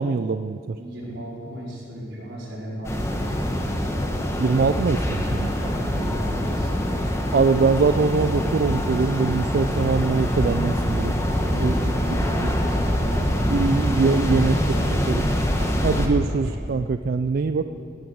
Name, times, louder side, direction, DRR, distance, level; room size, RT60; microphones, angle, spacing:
voice 1, 0.0-0.8 4.4-5.5 7.3-11.1 11.5-11.9 13.5-14.6 15.1-15.2 15.8-17.7, right 4 dB, 55° right, 10 dB, 0.3 m, -22 dB
voice 2, 0.8-3.6 5.6-7.1 11.3-13.7 14.0-15.3 15.6-16.3 16.6-16.8 17.6-17.7, right 1 dB, 80° right, -5 dB, 4.7 m, -36 dB
sound 1, 2.8-16.1, equal, 15° left, 1.3 m, -24 dB
17.0 x 9.4 x 7.1 m, 2.5 s
head